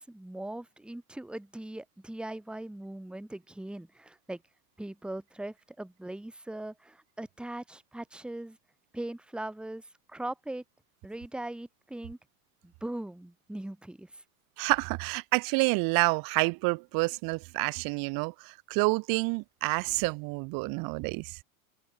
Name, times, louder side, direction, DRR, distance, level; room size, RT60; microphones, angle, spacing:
voice 1, 0.0-4.4 4.8-8.6 8.9-10.6 11.0-12.2 12.6-14.2, right 1 dB, ahead, 1.5 m, -40 dB
voice 2, 14.6-21.4, right 28 dB, 50° right, 1.3 m, -28 dB
supercardioid pair, 120°, 43 cm